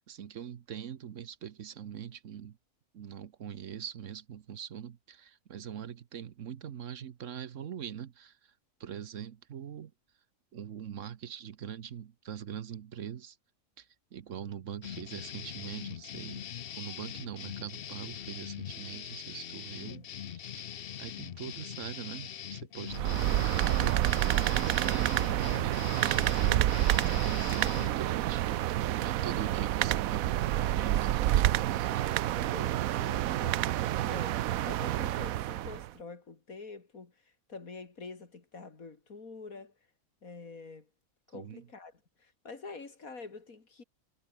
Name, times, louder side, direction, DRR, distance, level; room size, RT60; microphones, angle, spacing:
voice 1, 0.1-2.6 2.9-8.5 8.8-9.9 10.5-13.4 13.8-16.4 16.7-20.6 21.0-26.7 27.0-32.1 41.3-41.7, right 9 dB, 65° right, 1.3 m, -43 dB
sound 1, 14.8-27.9, left 9 dB, 50° left, 0.8 m, -42 dB
sound 2, 22.9-35.9, right 13 dB, 80° right, 1.1 m, -28 dB
voice 2, 32.4-33.7 34.0-37.1 37.5-39.7 40.2-40.9 41.3-41.9 42.2-43.8, left 4 dB, 85° left, 3.3 m, -46 dB
omnidirectional pair, 1.4 m